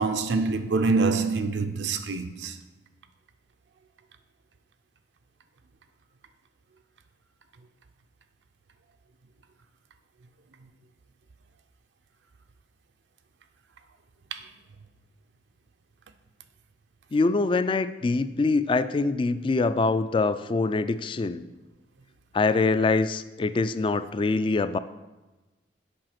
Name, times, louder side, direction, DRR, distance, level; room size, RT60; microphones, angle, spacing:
voice 1, 0.0-2.6 14.3-14.4, right 4 dB, 75° right, 0.5 m, -25 dB
voice 2, 17.1-21.4 22.3-24.8, left 3 dB, 30° left, 0.3 m, -24 dB
7.7 x 4.8 x 5.8 m
head